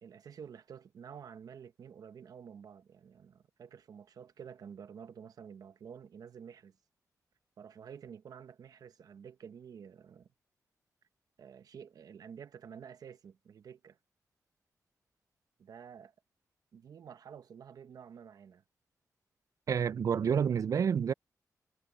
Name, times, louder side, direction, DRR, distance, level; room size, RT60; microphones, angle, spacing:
voice 1, 0.0-6.7 7.6-10.3 11.4-14.0 15.6-16.1 16.7-18.6, right 7 dB, 80° right, 0.9 m, -50 dB
voice 2, 19.7-21.1, right 7 dB, 60° right, 0.3 m, -29 dB
wide cardioid pair, 105°, 6 cm